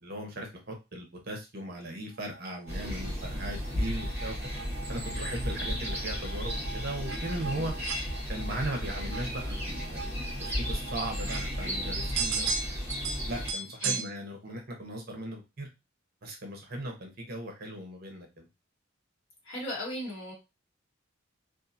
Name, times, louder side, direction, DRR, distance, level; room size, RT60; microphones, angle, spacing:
voice 1, 0.0-4.3 4.9-7.7 8.3-10.0 10.4-12.5 13.3-15.7 16.2-18.5, right 1 dB, 50° right, 3 dB, 0.8 m, -38 dB
sound 1, 2.3-14.1, right 5 dB, 65° right, 0.4 m, -39 dB
sound 2, 2.7-13.5, equal, 10° right, 1.0 m, -34 dB
voice 2, 19.5-20.3, left 1 dB, 70° left, -2 dB, 1.3 m, -36 dB
2.7 x 2.3 x 2.5 m, 0.25 s
head